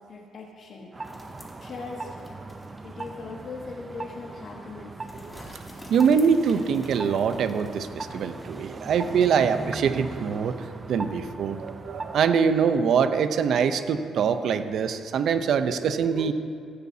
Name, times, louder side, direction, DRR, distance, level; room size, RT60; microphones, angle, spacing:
voice 1, 0.1-0.9 1.6-2.2 2.8-5.1, left 4 dB, 55° left, -1 dB, 1.4 m, -39 dB
sound 1, 0.9-12.3, right 3 dB, 25° right, 0.7 m, -39 dB
sound 2, 1.0-3.3 3.7-3.8 5.1-8.7, left 1 dB, 10° left, 2.6 m, -49 dB
voice 2, 5.9-16.3, right 6 dB, 70° right, 10 dB, 0.7 m, -24 dB
15.5 x 15.5 x 2.8 m, 2.3 s
cardioid pair, 90°, 0 cm